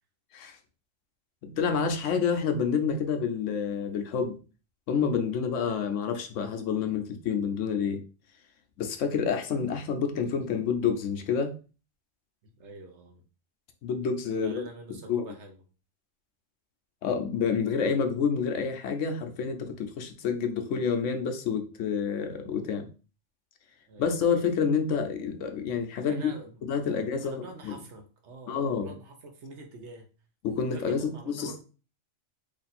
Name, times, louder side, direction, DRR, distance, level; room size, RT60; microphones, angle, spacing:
voice 1, 1.4-4.4 4.9-8.0 8.8-11.5 13.8-14.6 15.1-15.2 17.0-22.9 24.0-26.3 26.6-27.7 28.5-28.9 30.4-31.6, left 6 dB, 80° left, 6 dB, 1.0 m, -28 dB
voice 2, 12.4-13.2 14.3-15.6 23.9-24.3 26.1-30.1 30.7-31.6, right 3 dB, 70° right, 3 dB, 1.1 m, -46 dB
3.2 x 2.5 x 4.1 m, 0.35 s
omnidirectional pair, 1.3 m